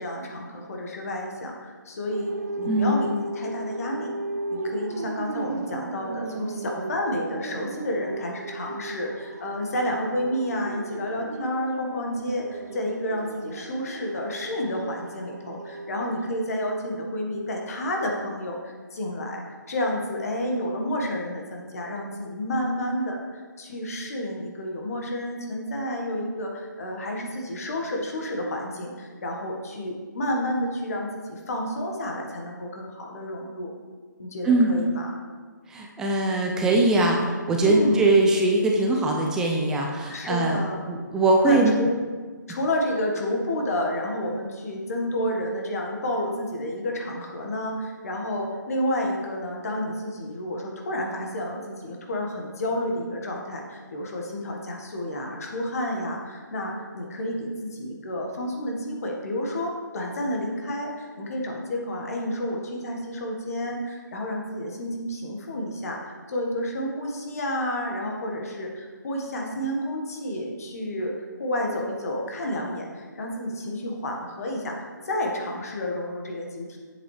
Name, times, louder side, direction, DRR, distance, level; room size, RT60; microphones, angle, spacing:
voice 1, 0.0-4.2 4.5-19.4 19.7-33.7 34.2-35.1 37.6-38.1 40.1-40.8 41.4-42.0 42.5-71.1 71.4-76.8, left 1 dB, 50° left, 0 dB, 1.5 m, -30 dB
sound 1, 2.1-16.4, right 2 dB, 50° right, 0.6 m, -36 dB
voice 2, 2.7-3.0 34.4-34.7 35.7-40.6 40.9-41.7, right 2 dB, 5° right, 0 dB, 0.4 m, -21 dB
7.7 x 7.4 x 3.3 m, 1.5 s
hypercardioid pair, 160°, 11 cm